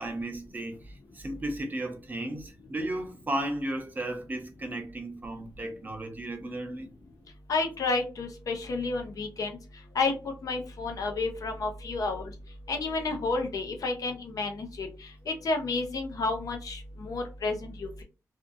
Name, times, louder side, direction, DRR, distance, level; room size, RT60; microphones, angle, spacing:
voice 1, 0.0-6.9, right 1 dB, 30° right, 0.6 m, -34 dB
voice 2, 7.5-9.6 9.9-10.1 10.4-12.2 12.7-18.0, left 3 dB, 70° left, 0.6 m, -31 dB
2.6 x 2.5 x 2.5 m
wide cardioid pair, 130°, 6 cm